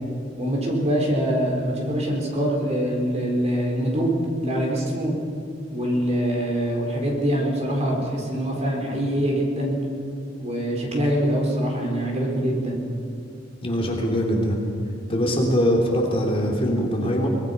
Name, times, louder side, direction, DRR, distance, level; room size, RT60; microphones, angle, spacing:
voice 1, 0.4-4.1 4.4-5.1 5.7-9.7 10.4-12.8, equal, 35° right, -1 dB, 4.3 m, -24 dB
voice 2, 13.6-14.6 15.1-17.3, equal, 30° left, -1 dB, 3.0 m, -22 dB
23.5 x 20.5 x 5.4 m, 2.5 s
head